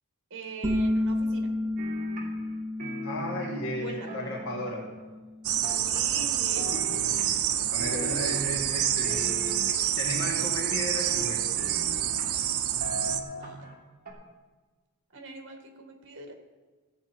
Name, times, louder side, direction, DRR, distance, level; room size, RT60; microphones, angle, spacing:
voice 1, 0.3-1.5 3.8-4.1 5.9-7.0 13.4-13.7 15.1-16.3, right 2 dB, 60° right, 3 dB, 2.0 m, -42 dB
sound 1, 0.6-6.0, left 1 dB, 10° right, 1.0 m, -32 dB
sound 2, 1.8-2.5 2.8-5.0 5.6-6.3 6.6-7.5 7.8-8.7 9.0-10.0 10.6-12.5 12.8-13.7 14.1-14.2, equal, 40° right, 2.6 m, -39 dB
voice 2, 3.0-4.9 7.0-7.4 7.7-9.4 9.9-11.5, equal, 65° left, 0 dB, 1.9 m, -34 dB
sound 3, 5.4-13.2, right 11 dB, 75° right, 0.8 m, -28 dB
16.0 x 8.3 x 4.6 m, 1.3 s
head